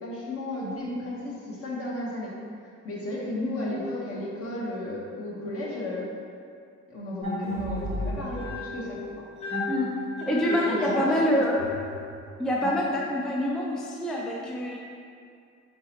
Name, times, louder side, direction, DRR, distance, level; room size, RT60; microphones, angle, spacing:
voice 1, 0.0-2.3 2.8-6.1 6.9-9.2 10.5-11.4, left 1 dB, 50° left, -5 dB, 1.1 m, -34 dB
sound 1, 7.2-13.4, left 1 dB, 20° left, 1.1 m, -34 dB
voice 2, 10.2-11.6 12.4-14.8, equal, ahead, -2 dB, 0.3 m, -26 dB
3.9 x 3.7 x 2.9 m, 2.4 s
cardioid pair, 90°, 30 cm